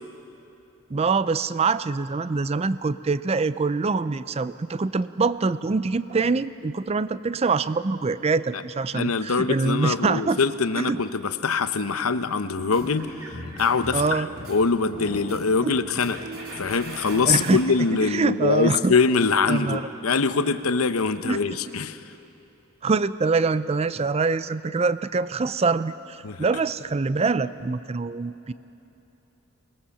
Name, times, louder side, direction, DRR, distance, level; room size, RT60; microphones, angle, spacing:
voice 1, 0.9-10.4 10.7-11.0 13.9-14.3 15.6-15.7 17.2-17.6 18.0-18.9 19.5-19.9 21.2-21.6 22.8-28.5, right 4 dB, 30° right, 15 dB, 0.4 m, -24 dB
voice 2, 8.9-13.1 13.6-16.2 16.6-22.0 26.2-26.4, left 4 dB, 90° left, 11 dB, 0.9 m, -23 dB
sound 1, 12.5-17.6, right 1 dB, 80° right, 3.4 m, -38 dB
25.0 x 20.0 x 7.2 m, 3.0 s
head